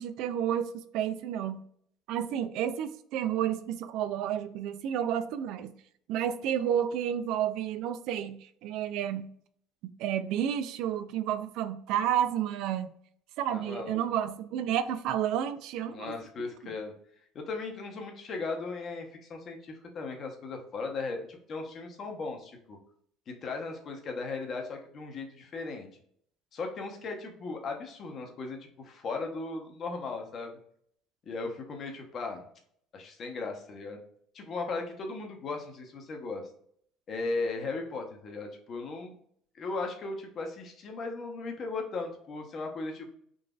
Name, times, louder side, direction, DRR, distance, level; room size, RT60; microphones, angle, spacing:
voice 1, 0.0-1.6 2.1-5.7 6.1-9.3 10.0-12.9 13.4-16.1, right 10 dB, 70° right, 11 dB, 0.3 m, -31 dB
voice 2, 13.5-14.0 15.9-16.9 17.3-22.8 23.3-25.9 26.5-30.5 31.3-32.4 32.9-34.0 34.3-36.5 37.1-39.1 39.5-43.1, left 3 dB, 45° left, 3 dB, 0.9 m, -37 dB
3.8 x 2.5 x 2.3 m, 0.65 s
cardioid pair, 110°, 0 cm